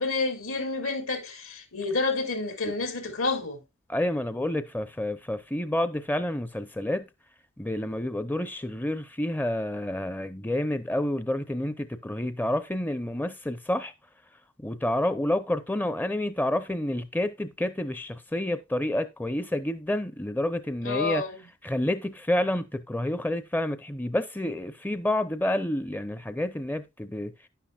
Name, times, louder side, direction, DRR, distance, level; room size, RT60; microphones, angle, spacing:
voice 1, 0.0-3.6 20.8-21.5, left 3 dB, 75° left, 4.0 m, -29 dB
voice 2, 3.9-7.1 7.6-13.9 14.6-21.2 21.6-27.3, left 1 dB, 10° left, 0.7 m, -29 dB
11.0 x 10.5 x 2.4 m
head